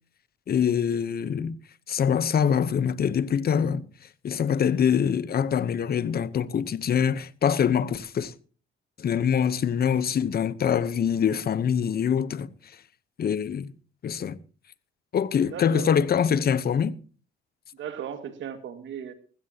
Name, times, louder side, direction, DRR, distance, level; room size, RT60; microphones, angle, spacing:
voice 1, 0.5-1.6 1.9-3.9 4.2-8.3 9.0-12.5 13.2-13.7 14.0-14.4 15.1-17.0, left 8 dB, 50° left, 1.0 m, -24 dB
voice 2, 15.5-16.0 17.7-19.1, right 8 dB, 70° right, 2.1 m, -36 dB
20.0 x 15.5 x 2.9 m
cardioid pair, 90°, 20 cm